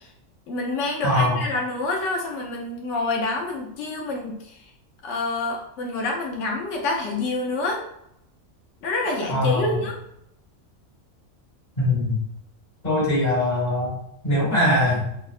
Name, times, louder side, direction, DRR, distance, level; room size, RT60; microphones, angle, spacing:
voice 1, 0.5-4.6 5.0-7.8 8.8-10.0, left 2 dB, 70° left, 0 dB, 0.8 m, -27 dB
voice 2, 1.0-1.4 9.3-9.8 11.8-12.2 12.8-13.9 14.2-15.0, left 1 dB, 35° left, -7 dB, 1.2 m, -21 dB
2.7 x 2.0 x 2.4 m, 0.78 s
omnidirectional pair, 1.4 m